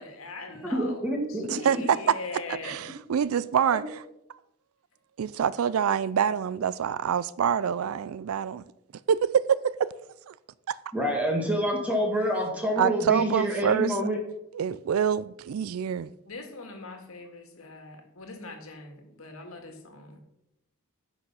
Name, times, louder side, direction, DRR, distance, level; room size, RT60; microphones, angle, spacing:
voice 1, 0.0-1.0 1.3-2.7 16.3-20.2, left 3 dB, 70° left, 2.0 m, -41 dB
voice 2, 0.6-1.5 3.7-3.8 10.9-14.2, equal, 5° right, 2.0 m, -27 dB
voice 3, 1.5-4.0 5.2-8.6 9.1-9.9 10.3-10.4 10.7-10.8 12.8-14.0 14.5-16.1, right 8 dB, 70° right, 0.4 m, -26 dB
9.7 x 6.2 x 5.7 m
head